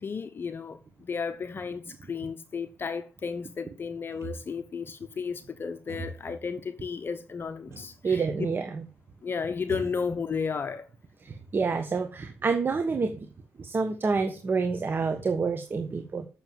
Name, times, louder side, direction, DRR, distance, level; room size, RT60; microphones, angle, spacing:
voice 1, 0.0-8.5 9.2-10.9, left 5 dB, 45° left, 0.9 m, -33 dB
sound 1, 4.1-4.8 5.9-6.5 7.7-8.1 8.4-8.5 9.7-10.7 11.1-11.9, right 4 dB, 60° right, 3.6 m, -43 dB
voice 2, 8.0-8.8 11.2-13.2 13.6-16.3, right 4 dB, 45° right, 1.3 m, -28 dB
7.9 x 6.8 x 7.4 m
cardioid pair, 65°, 5 cm